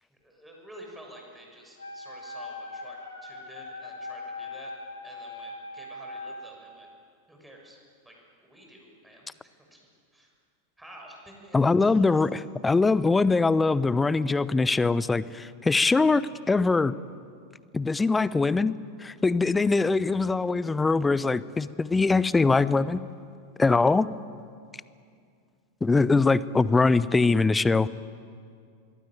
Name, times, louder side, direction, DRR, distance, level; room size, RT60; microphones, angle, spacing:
voice 1, 0.2-4.7 5.0-6.9 7.3-7.8 8.0-8.1 8.4-9.8 10.1-10.3 10.8-12.1, right 1 dB, 5° right, 0 dB, 6.8 m, -49 dB
Wind instrument woodwind instrument, 1.8-6.6, left 2 dB, 75° left, 4.0 m, -40 dB
voice 2, 11.5-16.9 17.7-18.7 19.0-23.0 23.6-24.1 25.8-27.9, left 3 dB, 10° left, 18 dB, 0.8 m, -22 dB
25.5 x 22.0 x 9.2 m, 2.3 s
figure-of-eight pair, 90°, 0 cm